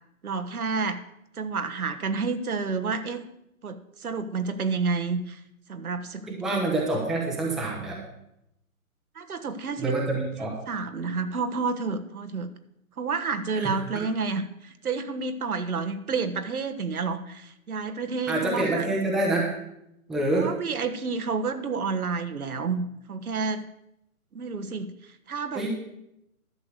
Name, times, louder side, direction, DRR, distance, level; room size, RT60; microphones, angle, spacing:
voice 1, 0.2-1.0 1.4-3.2 3.6-5.4 5.7-6.6 9.1-9.9 10.7-12.5 13.0-18.9 20.3-23.7 24.3-25.7, right 4 dB, 80° right, 9 dB, 1.3 m, -30 dB
voice 2, 6.3-8.0 9.8-10.5 13.5-14.0 18.3-19.5 20.1-20.5 25.5-25.7, right 2 dB, ahead, -2 dB, 0.7 m, -27 dB
11.5 x 6.7 x 6.6 m, 0.82 s
hypercardioid pair, 150°, 43 cm